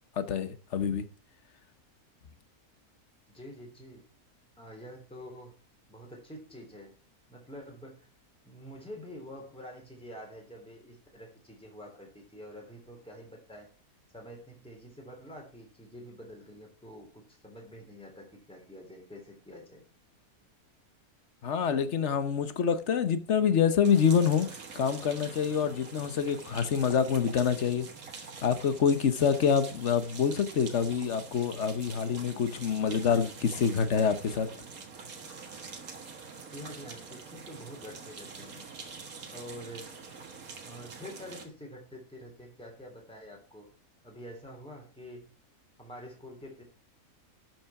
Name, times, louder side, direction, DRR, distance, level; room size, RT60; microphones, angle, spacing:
voice 1, 0.2-1.1 21.4-24.5 24.7-27.9 28.4-34.5, left 7 dB, 55° left, 1.2 m, -26 dB
voice 2, 3.3-4.1 4.6-5.6 5.9-6.9 7.3-8.1 8.4-13.7 14.1-19.8 36.5-38.7 39.3-39.9 40.6-43.7 44.0-45.3 45.8-46.6, equal, 5° left, 3.4 m, -47 dB
sound 1, 23.8-41.5, right 5 dB, 70° right, 2.1 m, -45 dB
12.5 x 6.1 x 5.8 m
omnidirectional pair, 1.6 m